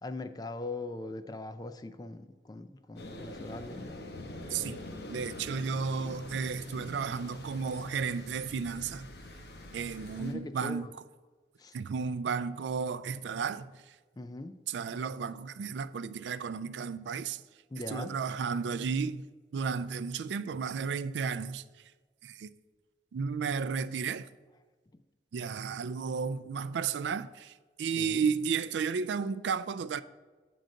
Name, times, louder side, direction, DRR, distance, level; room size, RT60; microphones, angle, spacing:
voice 1, 0.0-3.9 10.2-10.9 11.6-11.7 14.2-14.5 17.7-18.1 24.9-25.0 28.0-28.2, left 2 dB, 20° left, 0.4 m, -40 dB
sound 1, 3.0-10.3, left 1 dB, 60° left, 0.9 m, -45 dB
voice 2, 4.5-4.8 5.1-9.1 9.7-10.9 11.7-14.0 14.7-17.4 17.9-19.2 19.5-21.6 22.2-22.5 23.1-24.3 25.3-30.0, right 5 dB, 80° right, 0.3 m, -33 dB
8.9 x 3.9 x 6.3 m
head